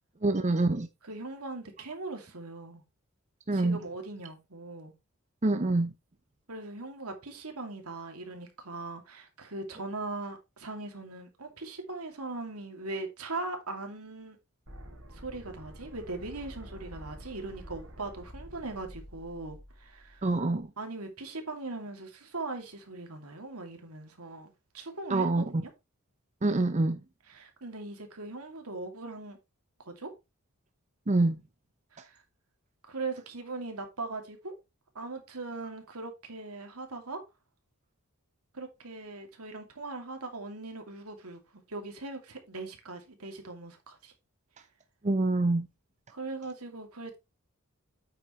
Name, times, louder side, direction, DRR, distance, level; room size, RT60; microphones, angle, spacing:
voice 1, 0.2-0.9 3.5-3.8 5.4-5.9 20.2-20.7 25.1-25.5 26.4-27.0 31.1-31.4 45.0-45.7, right 2 dB, 35° right, 0.7 m, -26 dB
voice 2, 1.0-2.8 3.5-4.9 6.5-14.4 15.1-20.3 20.8-25.3 27.3-29.4 29.8-30.1 31.9-32.2 32.9-34.5 34.9-37.2 38.5-44.1 46.1-47.2, right 3 dB, 85° right, 2.5 m, -40 dB
sound 1, 14.7-20.6, equal, 65° right, 3.4 m, -48 dB
8.9 x 6.6 x 3.1 m
head